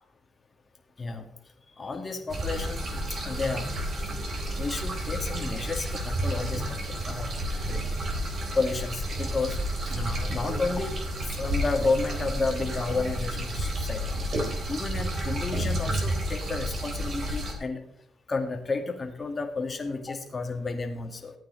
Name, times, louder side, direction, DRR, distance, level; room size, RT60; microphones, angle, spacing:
voice 1, 1.8-2.9 3.2-3.7 4.6-6.8 7.1-7.3 8.5-9.6 9.9-10.9 11.4-14.0 14.7-17.8 18.3-21.3, left 3 dB, 30° left, 3 dB, 2.3 m, -31 dB
gurgle water in pipe, 2.3-17.5, right 1 dB, 50° right, 3.7 m, -31 dB
15.0 x 9.0 x 4.1 m, 0.72 s
cardioid pair, 90°, 0 cm